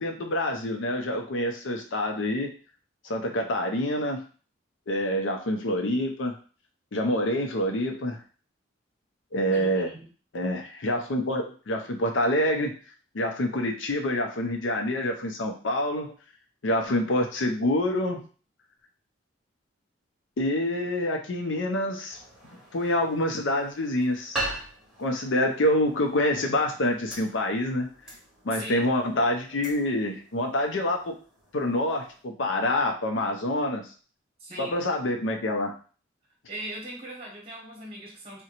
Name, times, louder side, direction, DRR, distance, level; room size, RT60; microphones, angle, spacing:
voice 1, 0.0-2.5 3.0-4.2 4.9-6.4 6.9-8.2 9.3-9.9 10.3-12.7 13.1-16.1 16.6-18.2 20.4-22.2 22.7-24.5 25.0-27.9 28.4-31.2 31.5-33.9 34.6-35.7, left 1 dB, 75° left, 3 dB, 0.5 m, -26 dB
voice 2, 9.5-10.1 28.5-28.9 34.4-34.8 36.5-38.4, right 1 dB, 30° right, -2 dB, 0.9 m, -39 dB
sound 1, 22.1-32.2, right 1 dB, 5° right, 0.9 m, -41 dB
3.7 x 2.1 x 2.9 m, 0.39 s
head